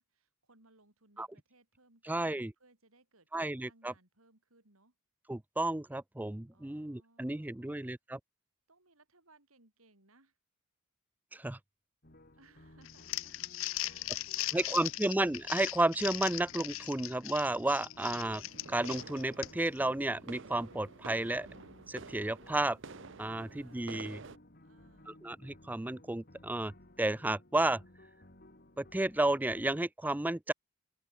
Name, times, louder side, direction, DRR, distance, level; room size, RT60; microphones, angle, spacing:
voice 1, 0.0-4.9 6.5-8.0 8.7-10.4 12.4-15.1 23.3-24.1 24.6-25.2, right 3 dB, 85° right, 6.8 m, -65 dB
voice 2, 2.1-2.5 3.3-3.9 5.3-8.2 11.3-11.6 14.5-18.4 18.7-21.5 21.9-22.8 23.2-24.2 25.1-26.7 27.0-27.8 28.8-30.5, right 2 dB, 10° right, 0.4 m, -32 dB
sound 1, 12.0-29.8, left 1 dB, 45° left, 3.2 m, -58 dB
Crumpling crinkling, 12.9-19.8, left 16 dB, 65° left, 0.5 m, -39 dB
sound 2, 18.0-24.4, right 4 dB, 60° right, 1.0 m, -50 dB
open air
head